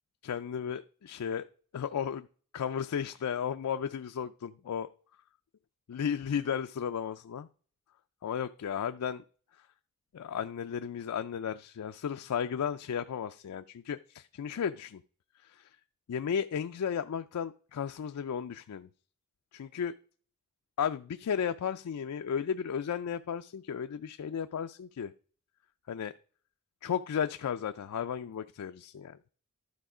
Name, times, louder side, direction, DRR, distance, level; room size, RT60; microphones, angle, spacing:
voice 1, 0.2-1.5 1.7-2.3 2.5-4.9 5.9-7.5 8.2-9.2 10.1-15.0 15.5-15.7 16.1-18.9 19.5-19.9 20.8-25.1 25.9-26.1 26.8-29.2, left 7 dB, 85° left, 8 dB, 0.4 m, -34 dB
11.5 x 4.3 x 4.9 m, 0.43 s
head